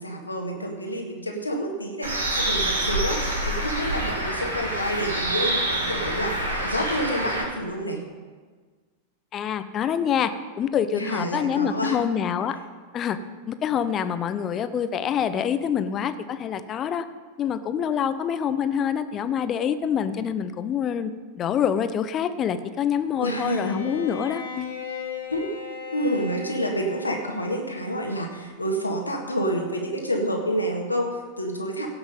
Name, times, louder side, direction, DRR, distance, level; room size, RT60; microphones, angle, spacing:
voice 1, 0.0-8.0 10.9-12.0 23.2-23.8 25.3-25.5 25.9-31.9, equal, 85° left, 1 dB, 1.8 m, -28 dB
Bird, 2.0-7.4, right 1 dB, 75° right, 2.2 m, -26 dB
voice 2, 9.3-12.6 12.9-13.2 13.5-17.1 17.4-21.1 21.4-24.7, left 8 dB, 30° left, 11 dB, 0.7 m, -26 dB
Bowed string instrument, 23.3-27.7, left 6 dB, 65° left, 1.7 m, -37 dB
17.0 x 6.1 x 5.3 m, 1.5 s
figure-of-eight pair, 90°, 0 cm